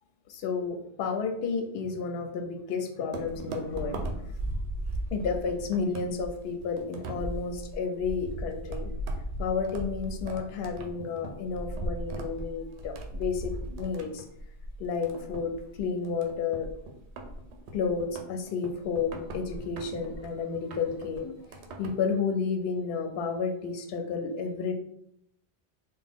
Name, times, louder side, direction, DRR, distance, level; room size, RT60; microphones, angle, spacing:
voice 1, 0.3-4.5 5.1-8.9 9.4-14.2 14.8-16.7 17.7-21.3 21.8-24.7, left 5 dB, 70° left, 6 dB, 0.8 m, -31 dB
sound 1, 3.1-22.1, right 1 dB, 85° right, 0.9 m, -38 dB
3.8 x 2.2 x 3.5 m, 0.74 s
omnidirectional pair, 1.1 m